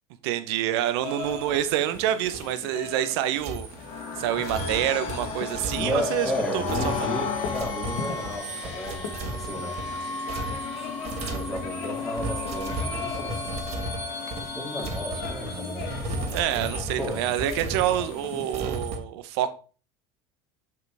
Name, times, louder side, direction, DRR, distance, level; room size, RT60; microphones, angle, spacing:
voice 1, 0.2-3.7 4.2-7.1 16.3-19.5, right 12 dB, 80° right, 11 dB, 1.0 m, -27 dB
sound 1, 1.0-18.7, left 6 dB, 70° left, 1.5 m, -41 dB
sound 2, 1.2-2.0 2.3-2.6 3.4-19.0, right 2 dB, 50° right, 2.0 m, -36 dB
sound 3, 3.7-16.2, left 4 dB, 50° left, 2.2 m, -34 dB
voice 2, 5.8-10.1 10.9-11.0 11.2-13.8 14.4-16.2 17.0-17.2, equal, ahead, -3 dB, 2.7 m, -34 dB
6.8 x 6.6 x 3.5 m, 0.37 s
supercardioid pair, 110°, 14 cm